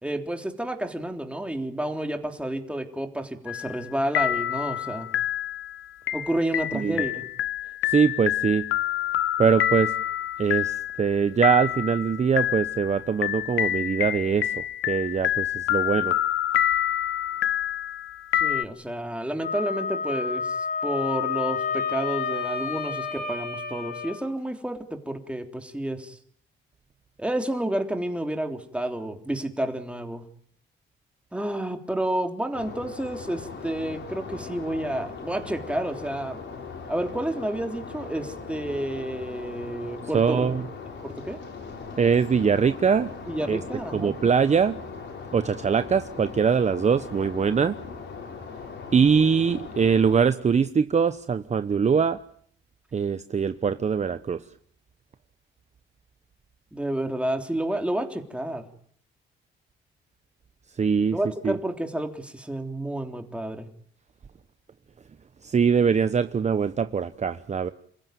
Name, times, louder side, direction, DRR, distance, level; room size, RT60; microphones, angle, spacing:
voice 1, 0.0-5.1 6.1-7.2 18.3-26.2 27.2-30.2 31.3-36.4 36.9-40.5 41.0-41.4 43.3-44.1 56.7-58.7 61.1-63.7, right 1 dB, 5° right, 5 dB, 3.6 m, -30 dB
sound 1, 3.5-3.9 4.1-18.6, left 12 dB, 85° left, 0.9 m, -27 dB
voice 2, 6.7-7.0 7.9-8.6 9.4-9.9 10.4-16.1 40.1-40.6 42.0-43.1 43.5-43.6 43.9-44.8 45.3-47.8 48.9-52.2 52.9-54.4 60.8-61.2 61.4-61.6 65.4-67.7, right 6 dB, 35° right, 11 dB, 1.0 m, -22 dB
Wind instrument woodwind instrument, 19.4-24.2, left 5 dB, 50° left, 4.9 m, -30 dB
sound 2, 32.5-50.2, left 5 dB, 70° left, 6.7 m, -39 dB
28.5 x 15.5 x 9.4 m, 0.64 s
cardioid pair, 90°, 20 cm